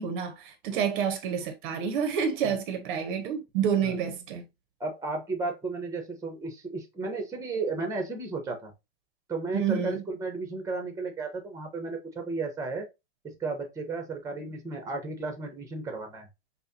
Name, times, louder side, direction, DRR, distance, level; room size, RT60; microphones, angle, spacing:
voice 1, 0.0-4.4 9.5-10.0, right 7 dB, 50° right, 0.8 m, -29 dB
voice 2, 4.8-8.7 9.3-12.8 13.2-16.3, right 3 dB, 10° right, 1.0 m, -34 dB
5.5 x 2.2 x 2.7 m
hypercardioid pair, 120°, 31 cm